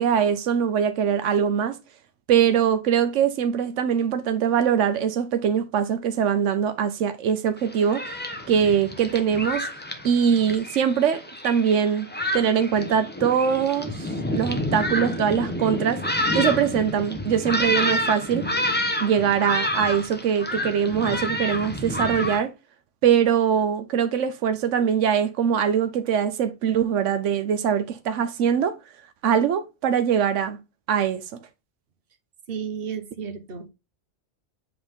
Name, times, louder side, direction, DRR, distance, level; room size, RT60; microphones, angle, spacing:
voice 1, 0.0-1.8 2.3-8.1 8.5-9.7 10.0-12.1 12.3-16.0 16.3-18.5 19.0-22.5 23.0-28.8 29.2-30.6 30.9-31.2, right 8 dB, 85° right, 1.0 m, -22 dB
Thunderstorm, 7.6-22.4, left 1 dB, 10° left, 0.8 m, -29 dB
voice 2, 32.5-33.7, right 7 dB, 55° right, 1.2 m, -33 dB
7.9 x 3.8 x 3.6 m
omnidirectional pair, 1.2 m